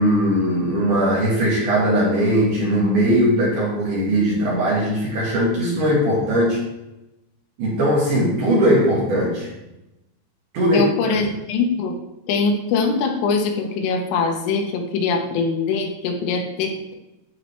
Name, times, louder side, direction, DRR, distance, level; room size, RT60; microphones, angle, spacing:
voice 1, 0.0-6.6 7.6-9.5 10.5-10.9, equal, 70° right, -5 dB, 1.9 m, -19 dB
voice 2, 10.7-11.9 12.3-16.9, left 4 dB, 75° left, 2 dB, 3.4 m, -22 dB
11.5 x 4.9 x 3.3 m, 0.94 s
omnidirectional pair, 5.9 m